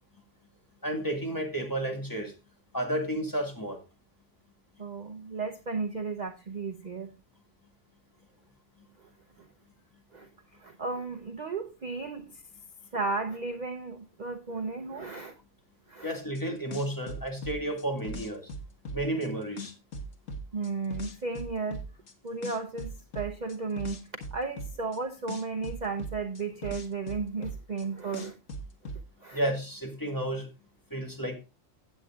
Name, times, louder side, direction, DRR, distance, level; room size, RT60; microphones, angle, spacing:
voice 1, 0.8-2.3 2.7-3.8 16.0-18.5 18.9-19.7 29.3-30.5 30.9-31.3, right 1 dB, 15° left, 2 dB, 2.0 m, -32 dB
voice 2, 4.8-7.1 9.4-9.5 10.1-12.4 12.9-15.4 15.9-16.2 20.5-21.8 22.2-24.0 24.3-28.4 28.8-28.9 29.2-29.4, right 4 dB, 40° right, 6 dB, 0.8 m, -34 dB
sound 1, 16.4-16.5 16.7-19.3 19.6-22.1 22.4-25.0 25.3-27.8 28.1-29.0, equal, 90° left, 1.7 m, -39 dB
16.5 x 8.3 x 2.4 m, 0.28 s
omnidirectional pair, 1.3 m